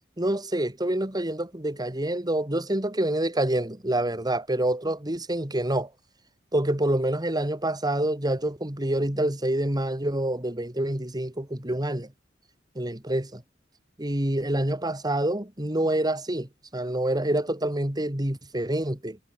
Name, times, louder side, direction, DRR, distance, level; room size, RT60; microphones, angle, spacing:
voice 1, 0.2-5.9 6.5-12.1 12.7-13.4 14.0-19.2, right 1 dB, 20° right, 2.8 m, -27 dB
head